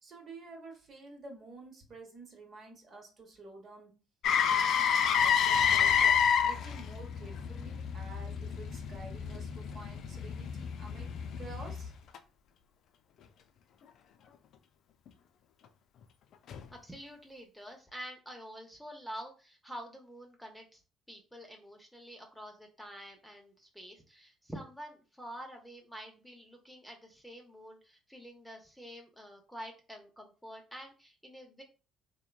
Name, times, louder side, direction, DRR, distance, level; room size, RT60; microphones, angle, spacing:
voice 1, 0.0-3.9 4.4-11.1 11.4-11.9, right 3 dB, 50° right, 1 dB, 1.0 m, -50 dB
Motor vehicle (road), 4.2-12.2 16.5-16.6, left 7 dB, 60° left, 0.3 m, -29 dB
voice 2, 16.7-20.8 21.1-31.6, equal, ahead, 1 dB, 0.7 m, -47 dB
2.9 x 2.1 x 2.3 m, 0.34 s
hypercardioid pair, 60°, 0 cm